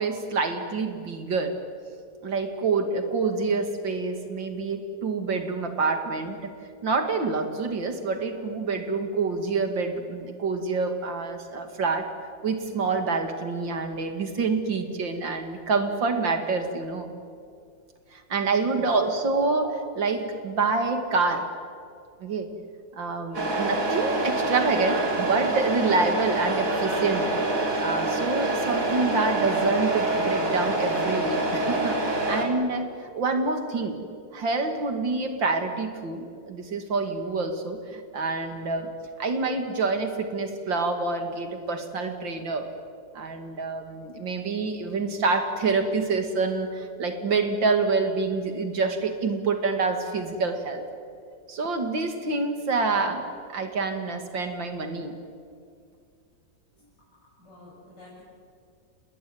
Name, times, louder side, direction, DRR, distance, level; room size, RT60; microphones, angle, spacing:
voice 1, 0.0-1.5 2.2-6.5 6.8-12.1 12.4-17.1 18.1-21.5 22.2-22.5 22.9-27.3 27.8-34.0 34.3-38.9 39.2-42.7 43.1-50.8 51.5-53.2 53.5-55.1, right 4 dB, 85° right, 6 dB, 3.1 m, -27 dB
Truck, 23.3-32.5, right 2 dB, 45° right, 3.8 m, -26 dB
voice 2, 57.4-58.2, left 1 dB, 65° left, -8 dB, 8.4 m, -49 dB
29.5 x 20.0 x 9.7 m, 2.3 s
omnidirectional pair, 2.0 m